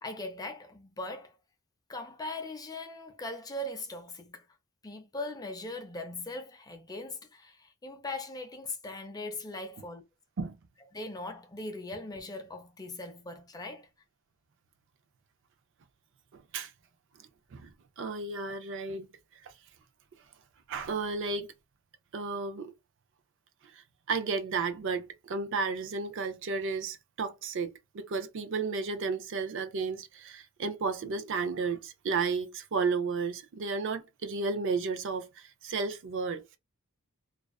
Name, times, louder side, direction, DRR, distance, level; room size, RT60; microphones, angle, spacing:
voice 1, 0.0-1.3 1.9-4.5 4.8-10.0 10.9-13.9, left 2 dB, 20° left, 0.5 m, -40 dB
voice 2, 16.3-16.7 17.5-19.1 19.4-19.5 20.7-21.5 22.1-22.7 23.7-23.8 24.1-36.4, right 4 dB, 60° right, 0.4 m, -33 dB
2.4 x 2.3 x 2.2 m
head